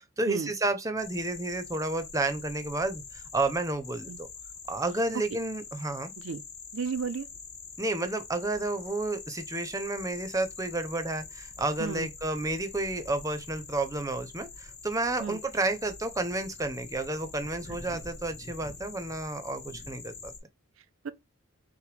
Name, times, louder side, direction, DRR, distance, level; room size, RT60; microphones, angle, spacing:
voice 1, 0.0-4.3 4.7-6.1 7.8-20.3, right 2 dB, 15° right, 0.6 m, -31 dB
sound 1, 1.0-20.4, left 4 dB, 35° left, 0.9 m, -45 dB
voice 2, 6.7-7.3 11.8-12.1 15.2-15.4 17.9-18.0 21.0-21.1, right 5 dB, 70° right, 0.5 m, -33 dB
5.8 x 2.1 x 3.3 m
head